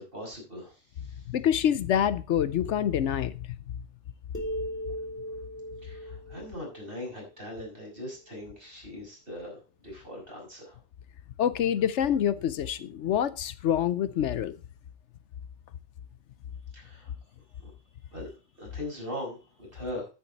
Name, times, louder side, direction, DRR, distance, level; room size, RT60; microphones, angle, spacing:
voice 1, 0.0-1.2 5.8-10.8 16.7-17.1 17.6-17.7 18.1-20.1, left 1 dB, 50° right, 5.9 m, -40 dB
voice 2, 1.3-3.5 11.4-14.6, left 9 dB, 75° left, 1.0 m, -26 dB
sound 1, 4.3-7.9, equal, 10° left, 1.8 m, -38 dB
10.5 x 9.1 x 4.0 m
omnidirectional pair, 1.2 m